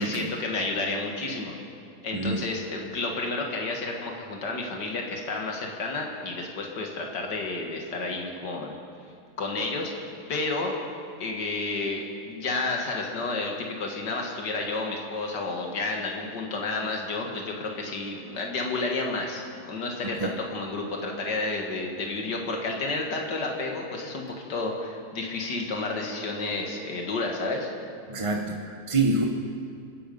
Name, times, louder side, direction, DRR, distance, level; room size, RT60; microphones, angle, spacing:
voice 1, 0.0-1.6 2.0-8.8 9.4-10.7 11.2-27.7, left 3 dB, 90° left, 1 dB, 2.3 m, -31 dB
voice 2, 2.1-2.4 20.2-20.3 28.1-29.3, right 3 dB, 25° right, 2 dB, 0.8 m, -26 dB
25.0 x 10.5 x 5.4 m, 2.4 s
omnidirectional pair, 1.8 m